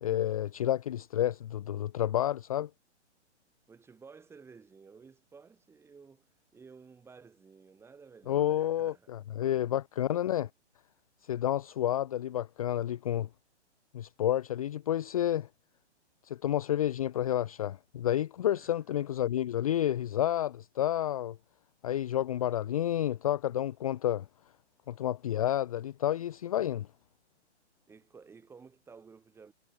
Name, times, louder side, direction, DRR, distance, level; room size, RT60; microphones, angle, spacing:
voice 1, 0.0-2.7 8.3-10.5 11.3-13.3 13.9-15.5 16.2-21.4 21.8-24.2 24.9-26.9, left 11 dB, 30° left, 0.6 m, -30 dB
voice 2, 3.7-9.6 18.5-19.1 27.9-29.5, right 5 dB, 5° right, 6.1 m, -54 dB
hypercardioid pair, 160°, 36 cm